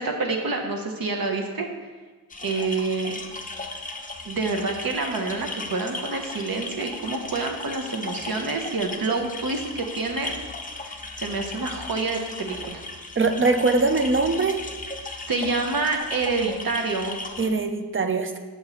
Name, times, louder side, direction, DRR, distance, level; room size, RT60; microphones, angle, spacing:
voice 1, 0.0-1.7 2.4-3.2 4.2-10.3 10.8-12.8 15.3-17.2, right 3 dB, 55° right, 3 dB, 0.8 m, -27 dB
sound 1, 2.3-17.5, left 2 dB, 20° left, 0.5 m, -36 dB
voice 2, 13.2-14.6 17.4-18.4, right 3 dB, 30° right, 7 dB, 0.4 m, -22 dB
7.0 x 4.2 x 4.0 m, 1.3 s
wide cardioid pair, 105°, 41 cm